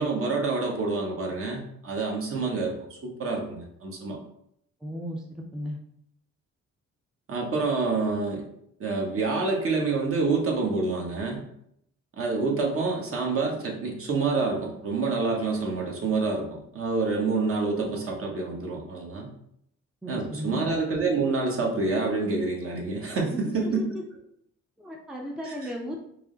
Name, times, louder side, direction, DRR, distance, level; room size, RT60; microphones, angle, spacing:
voice 1, 0.0-4.2 7.3-8.4 8.8-11.4 12.2-19.3 20.1-23.9 25.4-25.7, right 3 dB, 45° right, 0 dB, 1.1 m, -27 dB
voice 2, 4.8-5.8 20.0-20.7 23.3-23.9 24.8-26.0, equal, ahead, 0 dB, 0.5 m, -35 dB
4.7 x 2.0 x 3.8 m, 0.72 s
cardioid pair, 90°, 30 cm